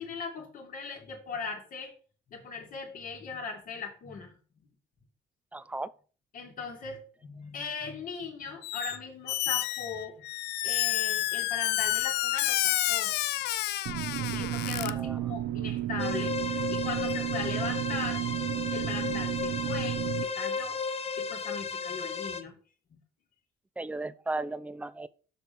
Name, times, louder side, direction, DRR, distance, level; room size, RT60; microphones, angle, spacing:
voice 1, 0.0-1.9 2.3-4.7 6.3-13.1 14.2-18.2 18.7-20.0 20.3-20.8 21.2-22.5, left 5 dB, 55° left, 2.3 m, -39 dB
voice 2, 5.5-5.9 15.0-15.2 23.8-25.1, right 2 dB, 10° right, 0.5 m, -35 dB
Squeak, 8.6-9.0 9.3-14.9, left 16 dB, 80° left, 0.5 m, -29 dB
sound 1, 13.9-20.2, right 13 dB, 70° right, 0.7 m, -32 dB
sound 2, 16.0-22.4, left 5 dB, 35° left, 0.9 m, -34 dB
6.9 x 5.3 x 6.0 m
cardioid pair, 110°, 17 cm